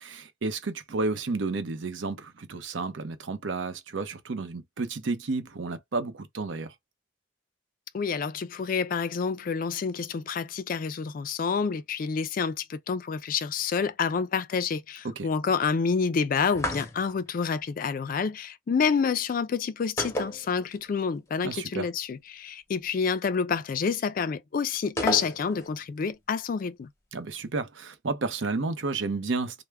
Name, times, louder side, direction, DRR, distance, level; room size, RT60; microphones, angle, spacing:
voice 1, 0.0-6.7 15.0-15.3 21.4-21.9 27.1-29.6, right 3 dB, 85° right, 0.6 m, -31 dB
voice 2, 7.9-26.9, left 5 dB, 50° left, 0.3 m, -28 dB
sound 1, 16.5-17.3 20.0-21.0 21.3-21.4 25.0-25.8, left 1 dB, 15° left, 0.7 m, -31 dB
3.3 x 2.0 x 3.3 m
head